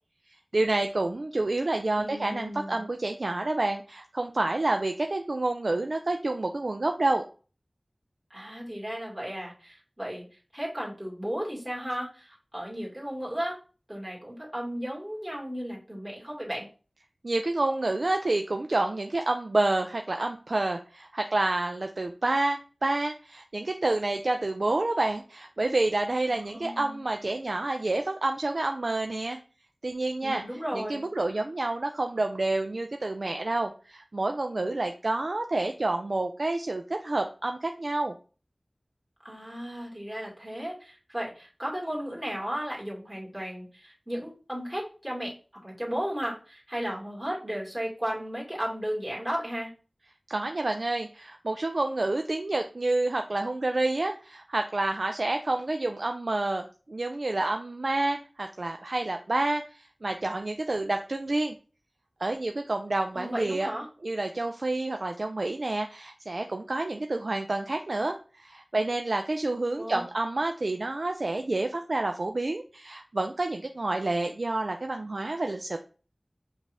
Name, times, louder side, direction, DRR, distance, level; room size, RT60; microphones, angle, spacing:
voice 1, 0.5-7.2 17.2-29.4 29.8-30.4 30.7-38.2 50.3-61.6 62.2-63.7 64.0-75.8, right 2 dB, 70° right, 5 dB, 0.3 m, -28 dB
voice 2, 2.0-2.9 8.3-10.2 10.5-13.6 13.9-16.7 26.3-27.2 30.2-31.1 39.2-45.3 45.6-49.7 63.1-63.9 69.8-70.0, equal, 15° right, -3 dB, 1.9 m, -35 dB
5.1 x 2.4 x 3.4 m, 0.37 s
wide cardioid pair, 50°, 0 cm